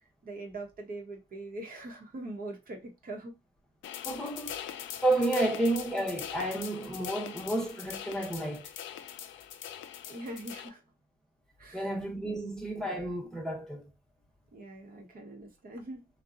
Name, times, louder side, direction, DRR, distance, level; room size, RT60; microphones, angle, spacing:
voice 1, 0.2-3.3 10.1-10.8 11.6-11.9 12.2-12.4 14.5-16.1, right 2 dB, 45° right, 0.9 m, -42 dB
sound 1, 3.8-10.7, left 10 dB, 75° left, 0.4 m, -42 dB
voice 2, 4.0-4.6 5.0-8.7 11.7-13.9, right 1 dB, 5° left, 0.9 m, -31 dB
2.7 x 2.2 x 2.4 m
cardioid pair, 90°, 20 cm